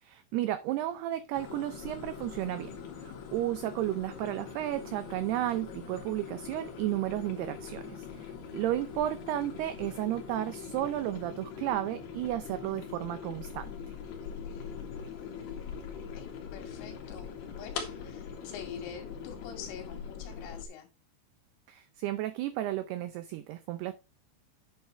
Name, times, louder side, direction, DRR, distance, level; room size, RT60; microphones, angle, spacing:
voice 1, 0.0-2.7 3.0-13.7 21.7-23.9, right 14 dB, 90° right, 2.3 m, -33 dB
sound 1, 1.3-20.7, left 6 dB, 60° left, 3.7 m, -42 dB
voice 2, 14.3-14.8 16.1-20.9, left 8 dB, 85° left, 4.9 m, -46 dB
9.1 x 8.9 x 3.2 m
omnidirectional pair, 5.5 m